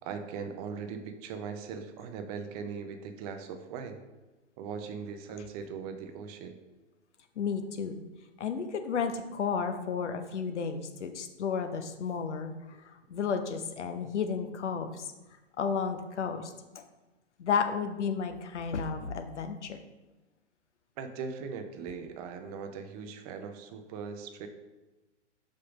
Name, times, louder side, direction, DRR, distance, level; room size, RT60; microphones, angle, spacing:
voice 1, 0.0-4.0 4.6-6.6 13.1-13.3 21.0-24.5, right 6 dB, 30° right, 6 dB, 0.7 m, -40 dB
voice 2, 7.4-8.0 8.4-15.1 15.6-16.8 17.4-19.8, left 6 dB, 70° left, 7 dB, 0.9 m, -32 dB
5.5 x 5.2 x 5.0 m, 1.1 s
hypercardioid pair, 120°, 36 cm